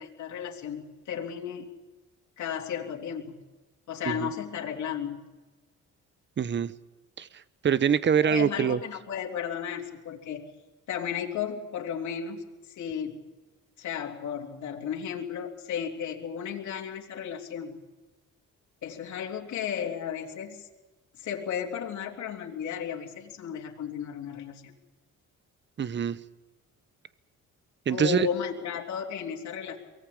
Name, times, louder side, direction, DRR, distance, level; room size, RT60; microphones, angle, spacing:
voice 1, 0.0-1.7 2.4-3.4 3.9-5.2 8.2-10.4 10.9-13.3 13.8-17.8 18.8-20.7 21.2-24.7 27.9-29.8, left 8 dB, 70° left, 0 dB, 3.3 m, -34 dB
voice 2, 6.4-6.7 7.2-7.3 7.6-8.8 25.8-26.2 27.9-28.3, right 7 dB, 40° right, 16 dB, 0.9 m, -24 dB
23.5 x 17.5 x 8.7 m, 1.2 s
cardioid pair, 90°, 30 cm